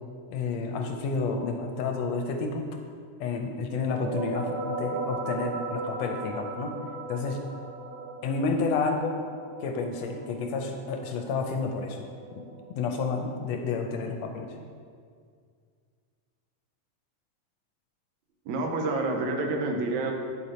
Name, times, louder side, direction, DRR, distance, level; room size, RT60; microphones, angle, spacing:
voice 1, 0.3-2.8 3.2-6.8 7.1-7.4 8.2-9.2 9.6-12.1 12.4-12.5 12.7-14.6, left 4 dB, 80° left, 3 dB, 1.8 m, -30 dB
sound 1, 3.7-13.1, right 3 dB, 50° right, 2.6 m, -37 dB
voice 2, 18.5-20.1, right 2 dB, 75° right, 2 dB, 2.2 m, -28 dB
9.0 x 6.8 x 4.3 m, 2.1 s
omnidirectional pair, 3.3 m